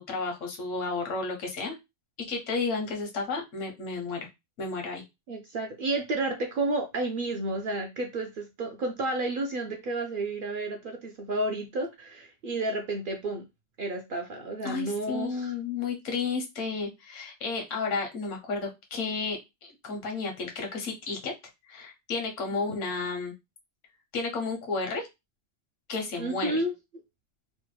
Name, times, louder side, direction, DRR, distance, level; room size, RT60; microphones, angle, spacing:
voice 1, 0.0-1.7 2.3-4.3 4.6-5.0 14.6-21.3 21.7-23.3 24.1-25.1 25.9-26.6, left 4 dB, 75° left, 3 dB, 1.2 m, -32 dB
voice 2, 5.3-13.4 13.8-15.5 26.2-26.7, right 2 dB, 55° right, 3 dB, 0.6 m, -31 dB
3.1 x 2.1 x 3.1 m, 0.22 s
omnidirectional pair, 1.3 m